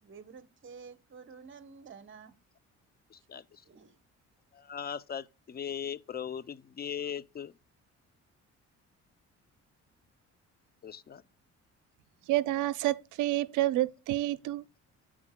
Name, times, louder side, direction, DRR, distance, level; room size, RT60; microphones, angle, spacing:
voice 1, 0.0-2.3 3.3-3.9, right 5 dB, 40° right, 1.0 m, -50 dB
voice 2, 3.1-3.6 4.5-7.5 10.8-11.2, left 8 dB, 30° left, 0.5 m, -39 dB
voice 3, 12.3-14.6, right 15 dB, 85° right, 0.5 m, -29 dB
14.5 x 5.0 x 2.2 m
cardioid pair, 90°, 30 cm